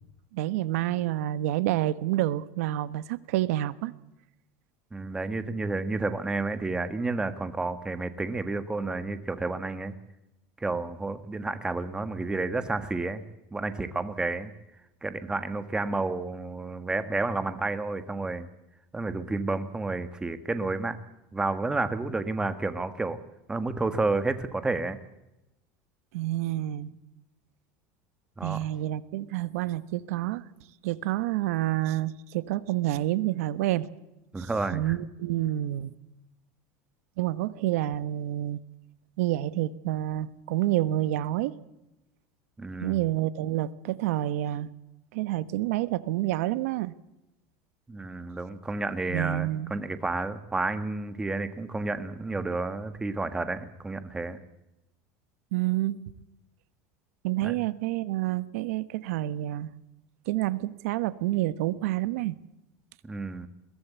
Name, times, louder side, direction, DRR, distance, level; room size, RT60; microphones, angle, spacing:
voice 1, 0.3-3.9 26.1-26.9 28.4-30.4 30.8-33.9 34.4-35.9 37.2-38.6 39.2-41.6 42.8-44.7 45.1-46.9 49.1-49.7 55.5-56.0 57.2-59.7 60.3-62.4, right 15 dB, 80° right, 16 dB, 1.2 m, -28 dB
voice 2, 4.9-9.9 10.6-13.2 13.5-14.5 15.0-18.5 18.9-21.0 21.3-23.2 23.5-25.0 28.4-28.6 34.3-35.0 42.6-43.0 47.9-54.4 57.4-57.5 63.0-63.5, right 3 dB, 10° right, 11 dB, 1.6 m, -30 dB
22.0 x 16.0 x 8.3 m, 0.92 s
supercardioid pair, 150°, 8 cm